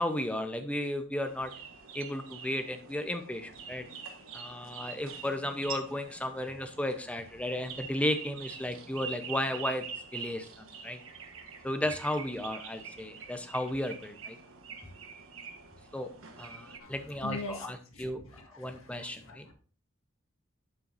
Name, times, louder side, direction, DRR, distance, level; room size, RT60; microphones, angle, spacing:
voice 1, 0.0-1.5 1.9-3.8 4.3-9.8 10.1-11.0 11.6-14.4 15.9-16.1 16.4-18.2 18.6-19.4, left 1 dB, 5° left, 7 dB, 0.7 m, -34 dB
sound 1, 1.2-16.8, right 6 dB, 80° right, 1.3 m, -45 dB
voice 2, 17.2-19.5, left 2 dB, 80° left, 3 dB, 1.9 m, -43 dB
11.5 x 5.7 x 2.6 m, 0.38 s
head